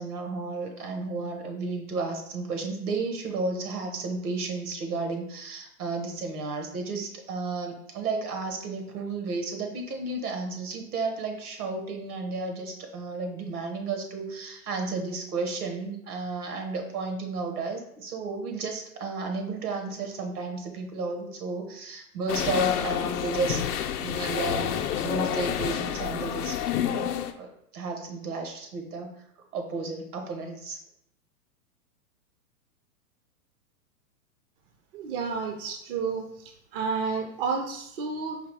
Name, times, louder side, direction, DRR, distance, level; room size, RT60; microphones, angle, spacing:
voice 1, 0.0-23.6 24.0-26.6 26.9-29.1 29.5-30.8, right 3 dB, 70° right, 4 dB, 1.2 m, -33 dB
sound 1, 22.3-27.3, left 9 dB, 75° left, 0.6 m, -29 dB
voice 2, 34.9-38.4, right 5 dB, 40° right, 3 dB, 0.5 m, -31 dB
4.8 x 2.9 x 3.3 m, 0.75 s
hypercardioid pair, 125°, 46 cm